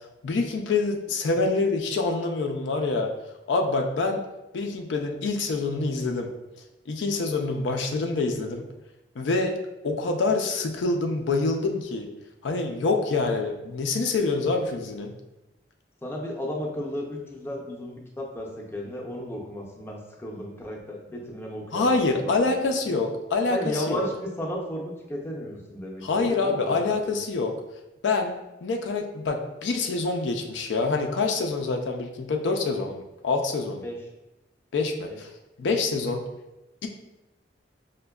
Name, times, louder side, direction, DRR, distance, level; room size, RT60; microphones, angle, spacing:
voice 1, 0.2-3.1 3.5-4.2 4.5-6.3 6.9-8.6 9.2-9.6 9.8-12.1 12.4-15.1 21.7-24.1 26.0-27.5 28.0-28.3 28.6-33.9 34.7-35.3 35.6-36.2 36.8-36.9, left 3 dB, 90° left, 3 dB, 0.4 m, -26 dB
voice 2, 16.0-22.8 23.5-27.2 33.8-34.0 35.0-35.2, left 1 dB, 15° left, -1 dB, 0.5 m, -34 dB
5.0 x 2.1 x 2.2 m, 0.98 s
head